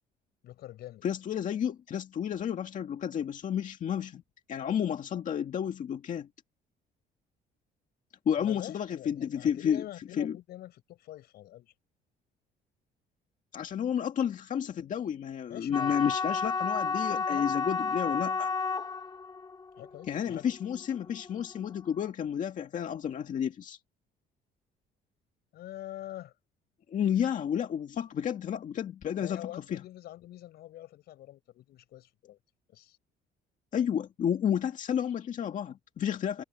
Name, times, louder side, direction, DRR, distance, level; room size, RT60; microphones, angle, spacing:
voice 1, 0.4-1.1 8.4-11.7 15.5-16.1 17.1-17.5 18.1-18.3 19.7-20.5 25.5-26.3 29.2-32.4 32.7-33.0, left 14 dB, 70° left, 5.2 m, -45 dB
voice 2, 1.0-4.2 4.5-6.3 8.3-9.8 10.2-10.4 13.5-18.5 20.1-23.8 26.9-29.8 33.7-36.4, left 8 dB, 50° left, 2.0 m, -31 dB
sound 1, 15.7-21.9, left 4 dB, 25° left, 2.9 m, -32 dB
cardioid pair, 110°, 17 cm